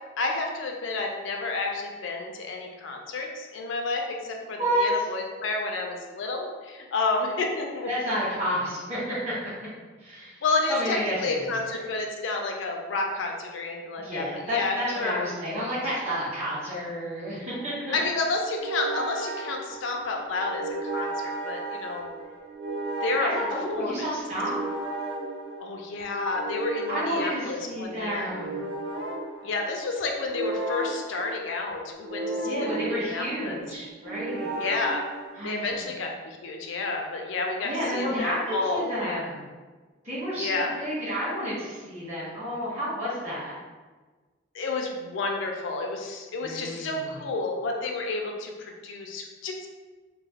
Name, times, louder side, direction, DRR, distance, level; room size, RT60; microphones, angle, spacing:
voice 1, 0.2-7.9 10.4-15.2 17.9-22.1 23.0-23.3 23.8-24.1 25.6-28.3 29.4-33.6 34.5-35.0 35.4-39.2 40.4-40.7 44.5-49.7, left 3 dB, 80° left, 2 dB, 0.4 m, -30 dB
voice 2, 7.9-9.3 10.0-10.4 10.7-11.9 14.0-18.0 23.2-24.6 26.9-28.6 32.4-34.6 35.4-35.9 37.6-39.4 40.0-43.5 46.4-47.1, equal, 35° right, -9 dB, 1.1 m, -31 dB
sound 1, 17.5-35.8, right 2 dB, 60° right, 0.3 m, -35 dB
3.0 x 2.0 x 2.7 m, 1.4 s
head